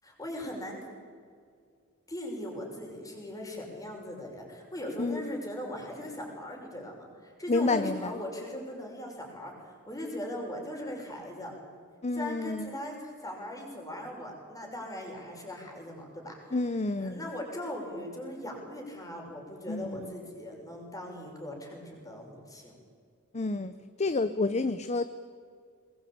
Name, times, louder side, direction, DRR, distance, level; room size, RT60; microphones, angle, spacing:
voice 1, 0.0-0.8 2.1-11.5 12.1-16.6 17.0-22.8, left 1 dB, 15° left, 0 dB, 6.0 m, -39 dB
voice 2, 5.0-5.3 7.5-8.1 12.0-12.7 16.5-17.3 19.7-20.1 23.3-23.7 24.0-25.0, left 3 dB, 30° left, 11 dB, 0.7 m, -29 dB
22.5 x 21.0 x 8.7 m, 2.1 s
head